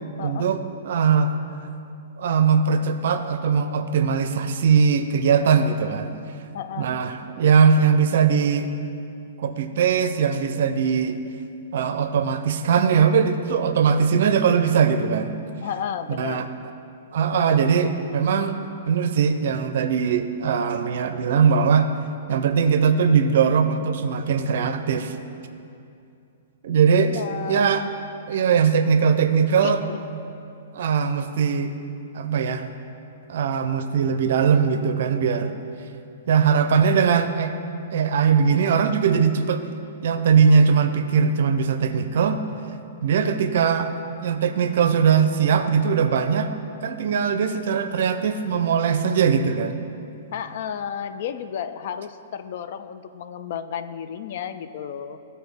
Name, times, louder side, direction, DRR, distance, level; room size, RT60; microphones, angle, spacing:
voice 1, 0.2-1.3 2.2-6.1 6.8-8.7 9.4-11.2 11.7-15.3 16.2-16.4 17.1-18.6 18.9-21.9 22.3-25.2 26.6-27.1 27.5-27.9 28.3-29.8 30.7-31.7 32.1-32.6 33.3-35.5 36.3-37.5 37.9-39.6 40.0-42.4 43.0-43.9 44.2-46.5 46.8-49.8, right 6 dB, 65° right, 9 dB, 0.5 m, -20 dB
voice 2, 6.5-6.9 15.6-16.5 26.9-27.8 29.6-30.1 50.3-55.2, left 8 dB, 55° left, 11 dB, 0.3 m, -32 dB
12.5 x 4.2 x 3.4 m, 2.6 s
hypercardioid pair, 150°, 0 cm